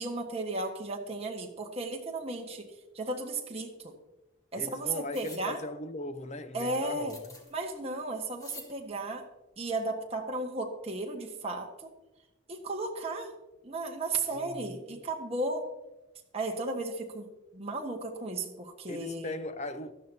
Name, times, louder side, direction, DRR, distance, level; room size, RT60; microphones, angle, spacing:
voice 1, 0.0-2.7 2.9-3.9 4.5-5.6 6.5-7.2 7.5-9.2 9.6-11.9 12.5-13.3 13.6-15.6 16.3-19.3, right 2 dB, 30° right, 1.4 m, -34 dB
voice 2, 4.5-7.2 14.3-15.0 18.9-19.9, left 1 dB, 30° left, 0.6 m, -39 dB
sound 1, 5.1-5.4 7.1-7.5 8.4-8.7, left 2 dB, 15° left, 1.4 m, -47 dB
17.0 x 12.5 x 2.8 m
head